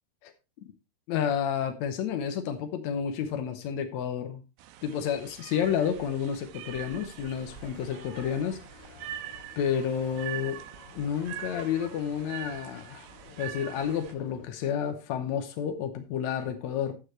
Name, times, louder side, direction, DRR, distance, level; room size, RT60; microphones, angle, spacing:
voice 1, 1.1-4.4 4.8-8.6 9.6-10.6 10.9-13.1 13.4-16.9, left 8 dB, 85° left, 1.6 m, -30 dB
sound 1, 4.6-14.1, right 13 dB, 90° right, 2.7 m, -43 dB
sound 2, 7.1-14.5, left 6 dB, 70° left, 3.0 m, -52 dB
14.0 x 6.7 x 3.2 m
omnidirectional pair, 4.5 m